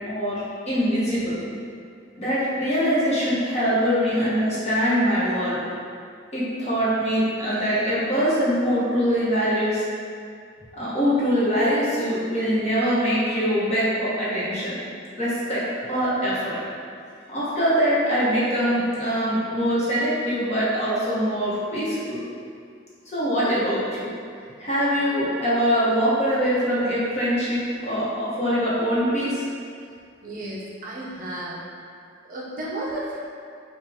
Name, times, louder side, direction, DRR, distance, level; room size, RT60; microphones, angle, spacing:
voice 1, 0.1-1.4 2.1-5.6 6.3-9.8 10.8-14.7 15.2-16.6 17.3-22.2 23.1-24.1 24.6-29.4, equal, 35° left, -9 dB, 1.2 m, -23 dB
voice 2, 30.2-31.6 32.2-33.2, right 1 dB, 45° right, -4 dB, 0.6 m, -33 dB
5.5 x 2.4 x 3.6 m, 2.3 s
head